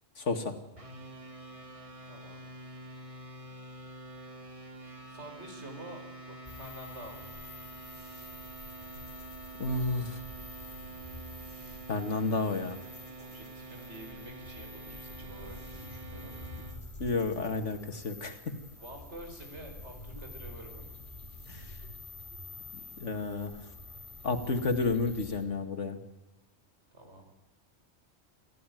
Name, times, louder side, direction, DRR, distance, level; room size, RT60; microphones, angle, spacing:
voice 1, 0.2-0.5 9.6-10.2 11.9-12.8 17.0-18.5 21.5-21.6 23.0-23.5 24.2-26.0, left 3 dB, 75° left, 7 dB, 2.5 m, -31 dB
sound 1, 0.8-16.8, right 2 dB, 25° right, 2.4 m, -47 dB
voice 2, 2.1-2.4 5.1-7.4 13.2-16.7 18.8-21.0 26.9-27.3, right 1 dB, 65° right, 3 dB, 5.5 m, -48 dB
sound 2, 6.5-25.5, left 2 dB, 40° left, 3.7 m, -48 dB
28.5 x 14.5 x 9.3 m, 1.1 s
omnidirectional pair, 1.2 m